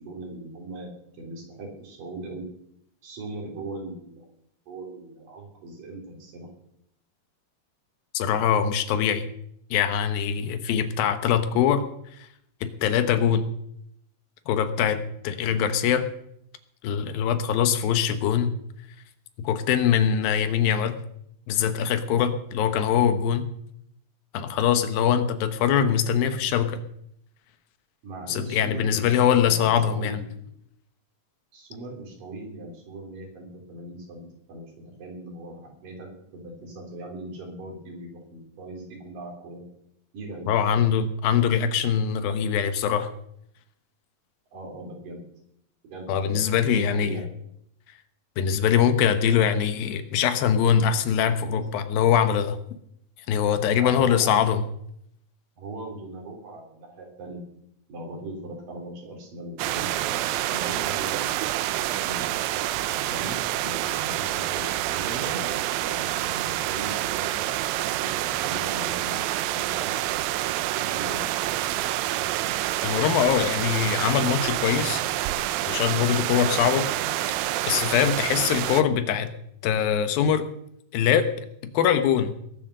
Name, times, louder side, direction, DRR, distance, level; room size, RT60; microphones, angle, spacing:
voice 1, 0.0-2.5 3.0-4.3 4.7-6.5 28.0-30.3 31.5-39.6 40.1-40.5 44.5-45.2 45.9-47.2 51.5-51.6 53.8-54.4 55.6-57.4 57.9-62.3 63.1-71.2, right 2 dB, 65° right, 1 dB, 5.0 m, -39 dB
voice 2, 8.1-9.3 9.7-11.8 12.6-13.5 14.5-16.1 16.8-18.5 19.4-21.0 21.5-23.4 24.3-26.8 28.3-30.2 40.5-43.1 46.1-47.2 48.4-52.6 53.3-54.6 72.8-75.0 75.7-76.9 77.7-79.3 79.6-80.4 80.9-81.3 81.7-82.4, left 8 dB, 80° left, 10 dB, 2.8 m, -23 dB
sound 1, 59.6-78.8, right 14 dB, 80° right, 2.4 m, -27 dB
20.5 x 7.4 x 6.6 m, 0.74 s
omnidirectional pair, 4.1 m